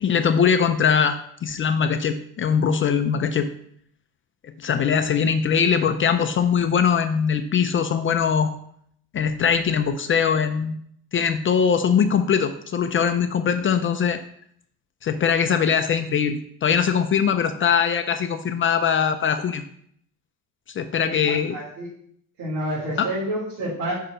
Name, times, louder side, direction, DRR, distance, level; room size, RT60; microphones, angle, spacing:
voice 1, 0.0-3.5 4.4-8.5 9.1-10.8 11.1-14.2 15.0-19.6 20.7-21.6 23.0-23.1, left 7 dB, 35° left, 8 dB, 0.5 m, -21 dB
voice 2, 21.0-21.9 22.4-23.9, right 1 dB, 70° right, -9 dB, 3.2 m, -29 dB
5.5 x 4.9 x 6.2 m, 0.66 s
cardioid pair, 135°, 38 cm